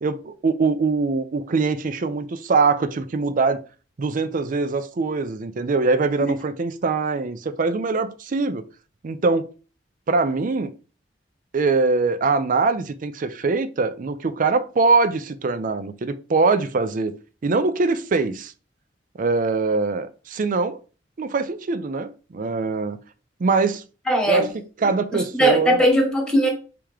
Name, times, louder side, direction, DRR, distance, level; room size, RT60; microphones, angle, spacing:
voice 1, 0.0-3.6 4.0-8.6 9.0-9.5 10.1-10.7 11.5-17.1 17.4-18.5 19.2-20.8 21.2-23.0 23.4-23.8 24.3-24.5 24.8-25.8, right 4 dB, 45° right, 0.4 m, -22 dB
voice 2, 24.1-24.5 25.1-26.5, equal, 5° left, 1.2 m, -19 dB
3.5 x 2.9 x 4.8 m
head